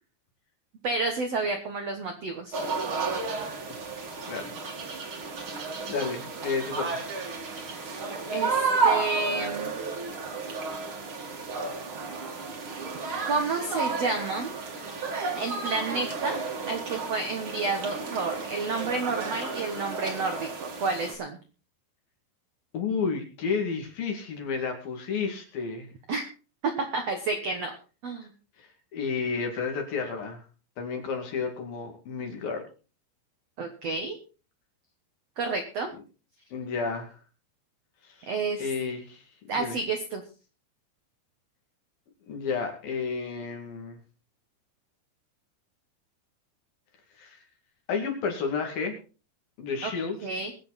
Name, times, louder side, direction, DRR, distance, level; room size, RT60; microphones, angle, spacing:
voice 1, 0.8-2.6 8.3-9.7 13.3-14.5 15.3-16.4 16.7-21.4 26.1-26.2 26.8-27.7 28.0-28.3 33.6-34.2 35.4-35.9 38.3-38.7 39.5-40.2 49.8-49.9 50.2-50.5, right 3 dB, 70° right, 5 dB, 1.5 m, -30 dB
sound 1, 2.5-21.1, right 4 dB, 40° right, 2.3 m, -32 dB
voice 2, 5.9-7.1 22.7-25.9 28.6-30.5 30.8-32.6 36.5-37.2 38.0-38.3 38.6-39.8 42.3-44.0 47.1-47.4 47.9-49.0 49.6-50.2, left 5 dB, 55° left, 4 dB, 3.8 m, -31 dB
22.5 x 8.2 x 4.2 m, 0.35 s
omnidirectional pair, 5.1 m